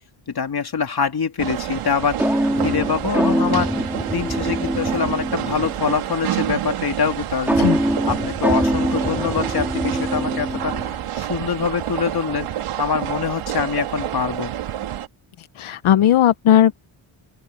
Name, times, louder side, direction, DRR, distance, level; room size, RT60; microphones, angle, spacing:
voice 1, 0.3-2.2 2.6-3.7 4.1-7.7 8.1-10.7 11.2-12.5 12.8-14.5, left 6 dB, 50° left, 3.2 m, -24 dB
sound 1, 1.4-15.1, right 11 dB, 85° right, 3.0 m, -28 dB
sound 2, 2.2-5.9 7.5-11.1, equal, 5° right, 5.6 m, -23 dB
voice 2, 15.6-16.8, left 11 dB, 75° left, 1.0 m, -16 dB
open air
cardioid pair, 75°, 49 cm